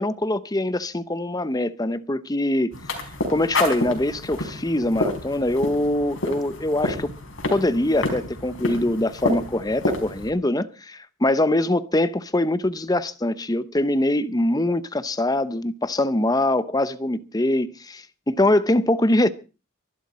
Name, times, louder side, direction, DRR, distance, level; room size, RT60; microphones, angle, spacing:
voice 1, 0.0-2.8 3.3-7.1 7.5-19.3, left 1 dB, 20° left, 0.8 m, -23 dB
sound 1, 2.7-10.3, left 1 dB, 70° left, 4.5 m, -29 dB
24.0 x 11.5 x 4.3 m
head